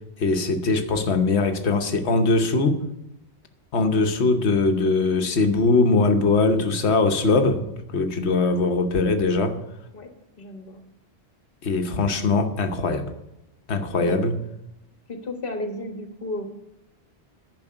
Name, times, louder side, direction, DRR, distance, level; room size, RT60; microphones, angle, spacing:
voice 1, 0.2-2.8 3.7-7.6 7.9-9.6 11.6-13.0 13.7-14.3, left 3 dB, 90° left, 6 dB, 1.3 m, -21 dB
voice 2, 10.4-10.8 14.0-14.2 15.1-16.5, left 1 dB, 55° left, 5 dB, 1.6 m, -33 dB
11.0 x 5.3 x 7.8 m, 0.87 s
omnidirectional pair, 1.1 m